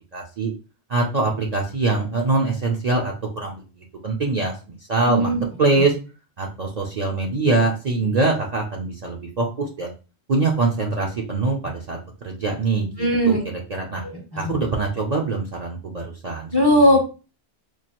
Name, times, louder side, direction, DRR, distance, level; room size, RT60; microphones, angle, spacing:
voice 1, 0.1-0.5 0.9-4.5 4.9-5.3 5.6-5.9 6.4-9.9 10.3-14.0 14.4-17.0, right 3 dB, 50° right, -1 dB, 0.6 m, -23 dB
voice 2, 5.0-5.4 13.0-13.4 14.0-14.5 16.5-17.0, equal, 25° left, 1 dB, 0.6 m, -18 dB
4.5 x 2.4 x 2.9 m, 0.33 s
omnidirectional pair, 1.2 m